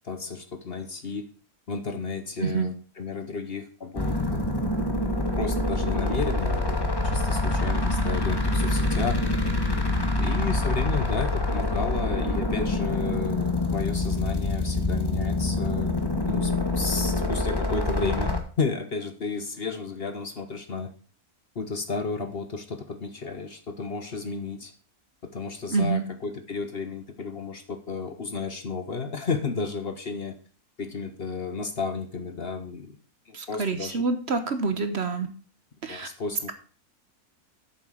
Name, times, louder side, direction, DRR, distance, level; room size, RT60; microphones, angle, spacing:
voice 1, 0.0-1.3 1.7-4.5 5.4-6.8 7.0-9.2 10.2-15.9 16.3-20.9 21.5-24.7 25.2-30.4 30.8-33.0 33.3-34.1 35.9-36.5, left 4 dB, 45° left, 8 dB, 1.1 m, -32 dB
voice 2, 2.4-2.7 25.7-26.0 33.3-35.3 35.8-36.1, right 4 dB, 50° right, 9 dB, 1.2 m, -27 dB
sound 1, 4.0-18.4, left 2 dB, 15° left, 1.4 m, -26 dB
8.5 x 7.0 x 6.4 m, 0.40 s
omnidirectional pair, 1.5 m